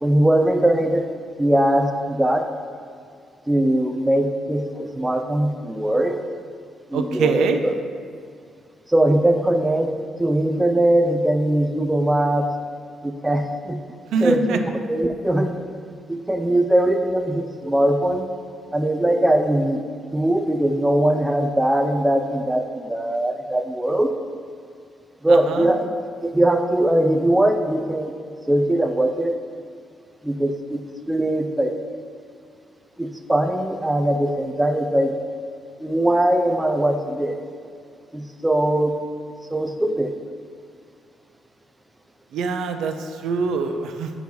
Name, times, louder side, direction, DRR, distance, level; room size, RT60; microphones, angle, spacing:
voice 1, 0.0-1.1 1.4-2.5 3.5-6.2 6.9-7.7 8.9-12.5 13.0-13.8 14.2-14.6 14.9-15.5 16.1-18.2 18.7-19.8 20.1-24.1 25.2-25.9 26.2-28.1 28.5-29.3 30.2-30.8 31.1-31.8 33.0-35.1 35.8-37.4 38.1-39.0 39.5-40.1, right 1 dB, 5° right, 5 dB, 0.3 m, -20 dB
voice 2, 6.9-7.6 14.1-14.6 25.3-25.7 42.3-44.1, right 4 dB, 70° right, 7 dB, 0.5 m, -24 dB
8.8 x 3.0 x 5.4 m, 2.3 s
cardioid pair, 170°, 0 cm